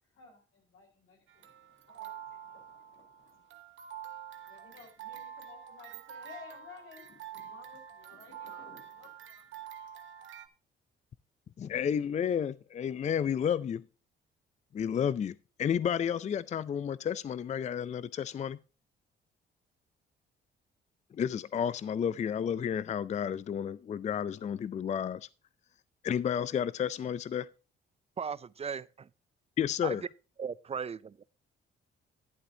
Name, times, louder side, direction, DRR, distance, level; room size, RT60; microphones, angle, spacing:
voice 1, 0.0-3.7 4.4-9.6, left 5 dB, 85° left, 4.6 m, -55 dB
sound 1, 1.3-10.5, right 9 dB, 75° right, 1.1 m, -47 dB
voice 2, 11.6-13.8 14.7-18.6 21.1-25.3 26.0-27.5 29.6-30.0, left 8 dB, 35° left, 0.4 m, -31 dB
voice 3, 28.2-29.1 29.8-30.0 30.4-31.2, right 6 dB, 30° right, 0.4 m, -37 dB
11.5 x 11.0 x 2.7 m
cardioid pair, 90°, 20 cm